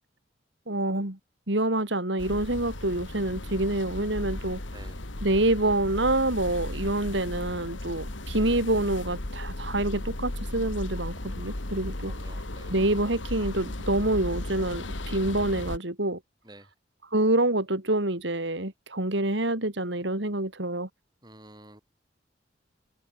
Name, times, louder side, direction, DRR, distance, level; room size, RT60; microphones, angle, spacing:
voice 1, 0.7-1.2 1.5-4.6 5.2-12.1 12.7-16.2 17.1-20.9, right 1 dB, 70° right, 3.7 m, -27 dB
sound 1, 2.2-15.8, left 1 dB, 85° left, 2.4 m, -35 dB
voice 2, 12.1-12.8 16.4-16.7 21.2-21.8, right 1 dB, 20° right, 7.9 m, -50 dB
head